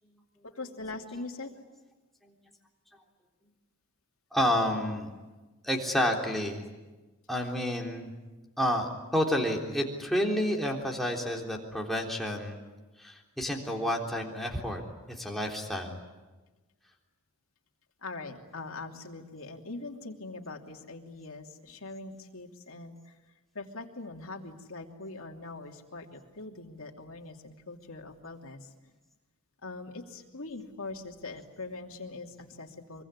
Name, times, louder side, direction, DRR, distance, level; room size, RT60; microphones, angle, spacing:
voice 1, 0.5-1.5 18.0-23.2 23.5-28.9 29.6-33.0, left 3 dB, 65° left, 2 dB, 2.9 m, -42 dB
voice 2, 4.3-5.1 5.6-6.6 7.3-8.1 8.6-12.6 13.0-14.8 15.1-16.0, equal, ahead, -1 dB, 3.5 m, -30 dB
24.5 x 24.0 x 9.8 m, 1.2 s
head